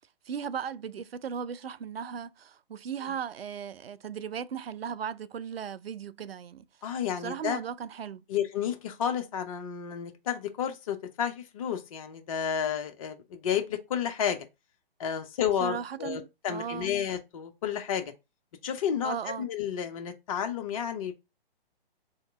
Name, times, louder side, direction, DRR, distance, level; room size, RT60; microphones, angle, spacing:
voice 1, 0.3-6.6 7.1-8.2 15.6-16.2 16.5-16.9 19.0-19.5, right 7 dB, 75° right, 0.5 m, -36 dB
voice 2, 6.8-7.6 8.3-14.5 15.0-18.1 18.6-21.1, left 8 dB, 35° left, 0.6 m, -31 dB
3.7 x 2.8 x 3.4 m
figure-of-eight pair, 130°, 30 cm